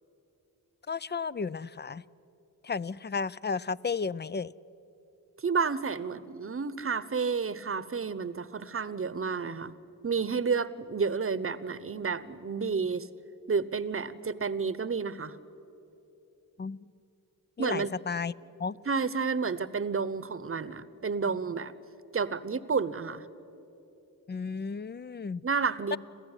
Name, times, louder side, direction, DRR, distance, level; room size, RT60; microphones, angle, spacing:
voice 1, 0.9-2.0 2.6-4.5 16.6-16.9 17.6-18.3 18.6-18.8 24.3-25.4 25.9-26.0, left 5 dB, 30° left, 19 dB, 0.4 m, -33 dB
voice 2, 5.4-9.7 10.0-13.1 13.5-15.3 17.6-17.9 18.9-21.7 22.1-23.3 25.4-26.0, right 5 dB, 35° right, 17 dB, 1.0 m, -30 dB
27.5 x 15.0 x 9.9 m, 3.0 s
cardioid pair, 65°, 36 cm